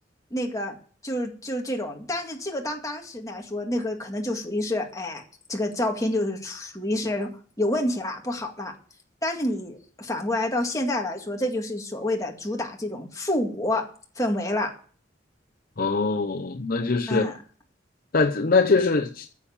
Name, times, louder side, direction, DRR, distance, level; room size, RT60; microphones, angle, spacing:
voice 1, 0.3-0.8 1.0-5.2 5.5-7.3 7.6-8.7 9.2-13.9 14.2-14.7 17.1-17.4, left 1 dB, 20° left, 2.1 m, -28 dB
voice 2, 15.8-17.3 18.1-19.3, left 4 dB, 50° left, 0.8 m, -22 dB
9.6 x 7.1 x 8.6 m
head